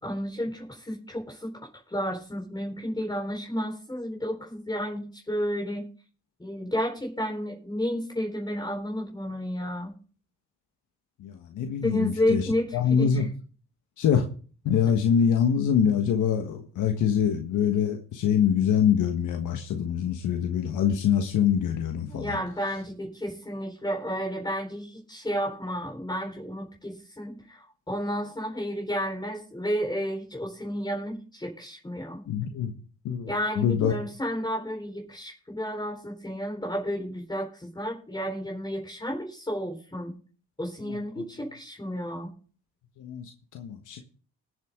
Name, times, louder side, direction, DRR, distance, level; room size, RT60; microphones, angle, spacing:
voice 1, 0.0-1.5 1.9-5.9 6.4-9.9 11.8-13.3 22.1-32.2 33.3-40.2 40.6-42.3, equal, 15° left, 0 dB, 4.4 m, -31 dB
voice 2, 11.2-12.5 12.7-13.3 14.0-14.2 14.6-22.4 32.3-32.7 33.0-33.9 40.9-41.0 43.0-44.0, left 8 dB, 80° left, 4 dB, 1.5 m, -24 dB
20.0 x 8.0 x 3.8 m, 0.39 s
cardioid pair, 90°, 30 cm